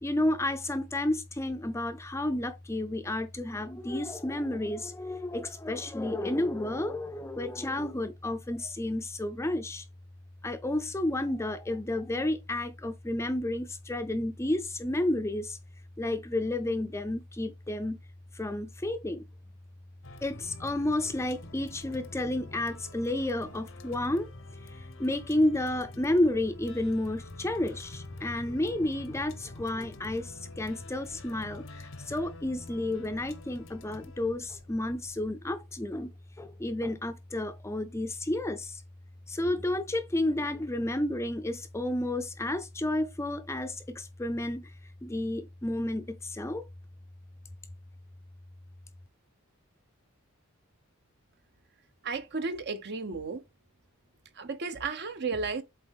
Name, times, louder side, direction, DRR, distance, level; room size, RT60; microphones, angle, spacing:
voice 1, 0.0-9.8 10.4-15.6 16.0-18.0 18.3-19.2 20.2-24.3 25.0-36.1 36.4-38.8 39.3-44.7 45.0-46.7, left 1 dB, 15° left, 0.6 m, -31 dB
sound 1, 20.0-35.3, left 2 dB, 60° left, 0.8 m, -48 dB
voice 2, 52.0-53.4 54.4-55.6, right 4 dB, 50° right, 0.9 m, -33 dB
7.7 x 4.0 x 3.5 m
head